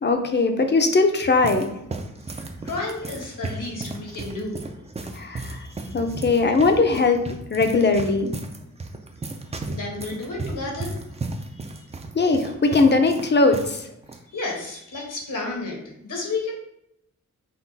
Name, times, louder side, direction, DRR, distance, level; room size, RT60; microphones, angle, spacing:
voice 1, 0.0-1.7 5.1-5.7 5.9-7.2 7.5-8.3 12.1-13.9, left 3 dB, 35° left, 6 dB, 0.5 m, -20 dB
sound 1, 0.9-13.8 14.0-14.2 14.9-15.2, right 2 dB, 20° right, 0.4 m, -35 dB
voice 2, 2.3-4.6 9.7-11.0 11.5-11.9 14.3-16.5, left 3 dB, 80° left, -1 dB, 1.4 m, -32 dB
5.8 x 2.3 x 3.9 m, 0.79 s
wide cardioid pair, 125°, 31 cm